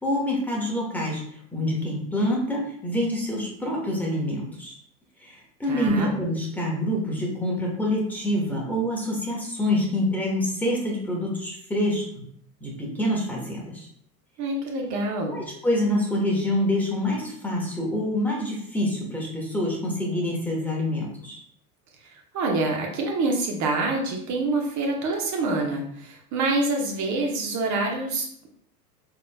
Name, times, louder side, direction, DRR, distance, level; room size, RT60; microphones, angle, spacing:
voice 1, 0.0-1.2 1.5-4.7 5.2-12.0 12.6-13.9 15.3-21.4, left 1 dB, 5° left, -3 dB, 1.2 m, -26 dB
voice 2, 5.7-6.1 14.4-15.4 22.3-28.5, right 2 dB, 35° right, 1 dB, 1.1 m, -26 dB
3.9 x 3.3 x 2.2 m, 0.65 s
hypercardioid pair, 95°, 48 cm